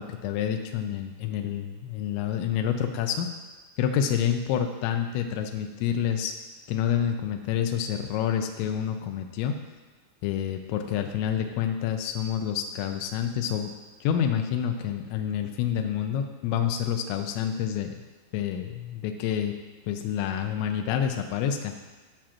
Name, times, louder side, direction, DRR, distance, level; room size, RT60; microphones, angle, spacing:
voice 1, 0.0-3.3 3.8-6.3 6.7-9.6 10.2-13.7 14.0-17.9 18.3-19.5 19.9-21.7, left 9 dB, 90° left, 4 dB, 2.5 m, -28 dB
12.5 x 6.1 x 2.9 m, 1.2 s
omnidirectional pair, 5.9 m